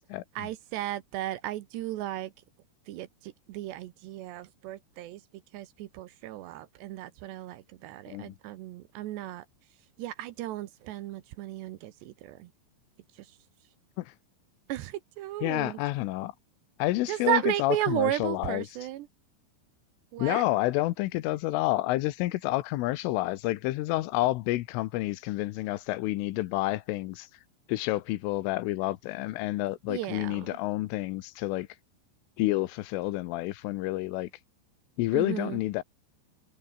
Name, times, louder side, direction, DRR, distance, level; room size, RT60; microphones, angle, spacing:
voice 1, 0.4-2.3 2.9-5.2 5.5-9.4 10.0-12.5 13.2-13.3 14.7-15.8 17.1-19.1 20.1-20.4 29.9-30.5 35.1-35.6, right 14 dB, 75° right, 2.8 m, -34 dB
voice 2, 15.4-16.3 16.8-18.7 20.2-27.3 27.7-31.7 32.4-34.3 35.0-35.8, left 17 dB, 85° left, 3.5 m, -29 dB
omnidirectional pair, 5.7 m